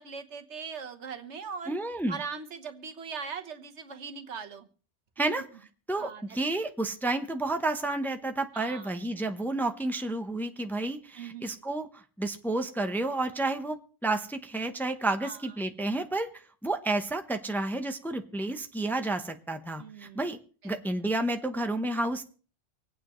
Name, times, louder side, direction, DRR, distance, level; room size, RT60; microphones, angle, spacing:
voice 1, 0.0-1.7 2.1-4.7 5.2-5.4 6.0-6.4 8.5-8.9 11.1-11.5 15.2-15.5 19.8-20.3 20.6-20.7, right 5 dB, 85° right, 7 dB, 1.5 m, -40 dB
voice 2, 1.7-2.2 5.2-5.4 5.9-16.3 16.6-20.4 20.6-22.2, right 2 dB, ahead, 7 dB, 0.7 m, -31 dB
26.0 x 8.9 x 3.1 m, 0.41 s
omnidirectional pair, 1.2 m